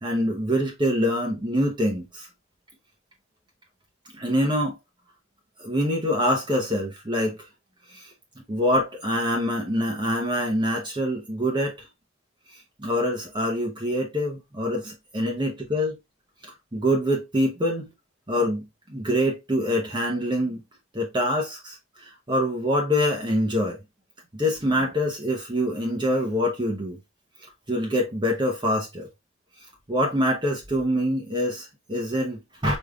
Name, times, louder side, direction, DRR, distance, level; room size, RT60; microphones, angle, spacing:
voice 1, 0.0-2.3 4.1-4.8 5.6-7.4 7.9-8.1 8.5-11.8 12.8-16.0 16.7-17.9 18.3-20.6 20.9-23.8 24.3-27.0 27.7-29.1 29.9-32.8, equal, 25° right, 0.8 m, -25 dB
5.2 x 3.5 x 2.3 m
head